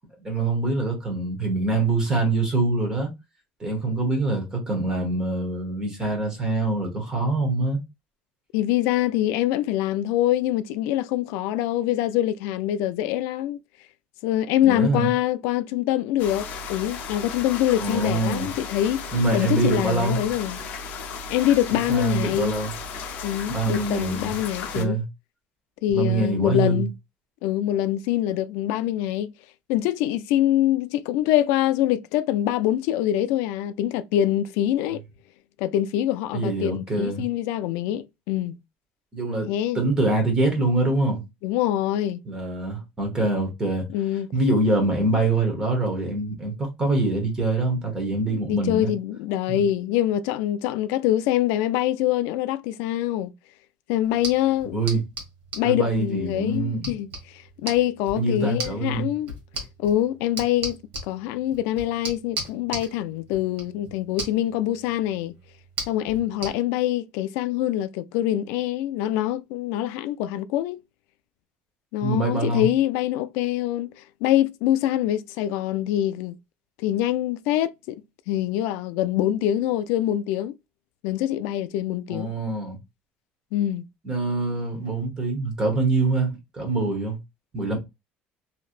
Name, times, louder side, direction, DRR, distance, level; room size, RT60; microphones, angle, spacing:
voice 1, 0.2-3.1 3.6-7.8 14.7-15.1 17.8-18.5 19.1-20.3 21.9-22.7 23.5-24.3 24.7-25.0 25.9-26.8 36.3-37.2 39.1-39.5 39.7-41.2 42.2-43.8 44.3-48.9 49.5-49.6 54.7-55.0 55.6-56.9 58.1-59.1 72.0-72.7 82.1-82.8 84.0-87.2 87.5-87.8, right 2 dB, 15° right, 1.1 m, -24 dB
voice 2, 8.5-13.6 14.2-20.6 21.3-22.6 23.2-25.0 25.8-26.9 27.4-29.3 29.7-35.0 35.6-38.6 39.5-39.8 41.4-42.2 43.9-44.3 48.5-53.3 53.9-54.8 55.5-59.3 59.8-60.8 61.1-65.3 65.9-70.8 71.9-76.4 76.8-78.0 78.3-80.6 81.0-82.3 83.5-83.8, left 12 dB, 85° left, 0.3 m, -24 dB
sound 1, 16.2-24.9, left 5 dB, 50° left, 0.6 m, -35 dB
sound 2, 54.0-66.5, right 3 dB, 50° right, 1.4 m, -38 dB
3.2 x 2.7 x 2.4 m
cardioid pair, 180°, 4 cm